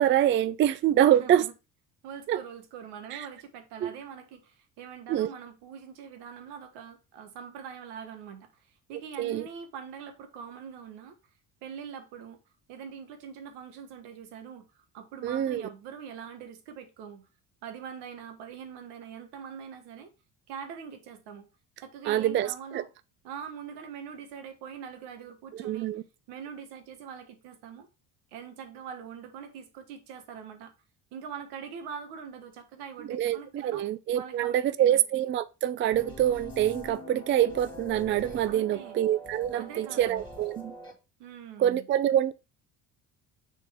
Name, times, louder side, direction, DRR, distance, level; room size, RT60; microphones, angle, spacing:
voice 1, 0.0-1.5 2.3-2.4 3.1-3.3 3.8-3.9 5.1-5.3 9.2-9.5 15.2-15.6 22.1-22.8 25.5-26.0 33.1-40.7 41.6-42.3, right 11 dB, 30° right, 0.4 m, -25 dB
voice 2, 1.1-1.5 2.0-11.1 11.6-12.4 12.7-17.2 17.6-20.1 20.5-21.4 21.8-22.9 23.2-25.9 26.3-27.9 28.3-30.7 31.1-35.0 38.4-39.0 39.5-40.2 41.2-41.9, right 7 dB, 85° right, 1.4 m, -43 dB
sound 1, 35.9-40.9, equal, 10° left, 2.3 m, -44 dB
6.4 x 4.3 x 3.5 m
cardioid pair, 110°, 39 cm